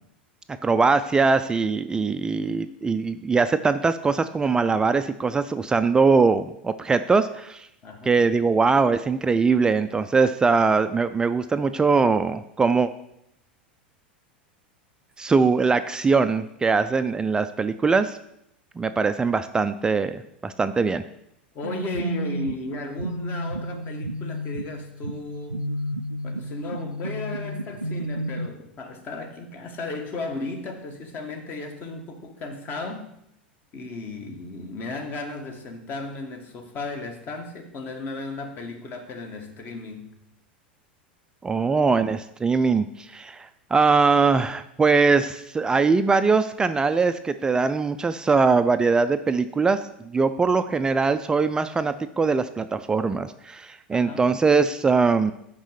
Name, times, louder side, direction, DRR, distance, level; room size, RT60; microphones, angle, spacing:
voice 1, 0.6-7.7 8.1-12.9 15.2-18.2 18.8-21.0 41.4-55.3, right 4 dB, 15° right, 11 dB, 0.4 m, -21 dB
voice 2, 7.8-8.1 21.5-25.7 26.2-33.0 33.7-40.1 53.9-54.3, left 2 dB, 35° left, 5 dB, 1.6 m, -35 dB
sound 1, 21.6-28.5, equal, 90° right, 0.3 m, -32 dB
6.2 x 5.5 x 6.5 m, 0.77 s
figure-of-eight pair, 85°, 5 cm